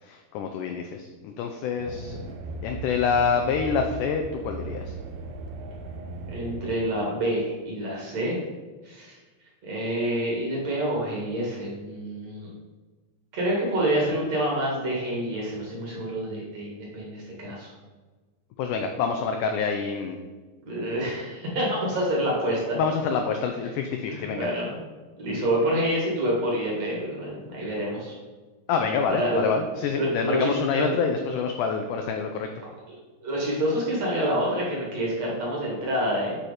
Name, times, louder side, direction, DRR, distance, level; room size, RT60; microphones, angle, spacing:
voice 1, 0.0-2.2 2.6-4.9 18.6-20.2 22.7-24.5 28.7-32.5, left 5 dB, 85° left, 5 dB, 1.8 m, -27 dB
sound 1, 1.8-6.8, right 2 dB, 80° right, 2.5 m, -37 dB
voice 2, 6.3-8.4 8.8-9.2 9.6-12.5 13.3-17.7 20.7-22.8 24.1-24.8 25.2-28.1 29.1-29.4 29.9-30.9 32.9-33.0 33.2-36.4, right 1 dB, 50° right, -4 dB, 2.6 m, -27 dB
9.1 x 4.3 x 4.9 m, 1.3 s
omnidirectional pair, 4.2 m